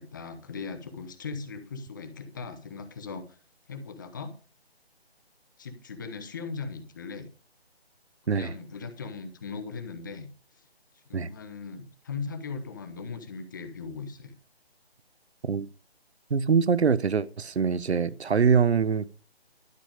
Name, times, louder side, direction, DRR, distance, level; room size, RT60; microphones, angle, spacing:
voice 1, 0.0-3.4 3.7-4.3 5.6-7.3 8.3-10.3 10.6-10.7 10.9-14.3, left 5 dB, 20° left, 0.9 m, -39 dB
voice 2, 16.3-19.1, right 6 dB, 85° right, 0.9 m, -24 dB
12.0 x 7.0 x 5.0 m
figure-of-eight pair, 160°, 32 cm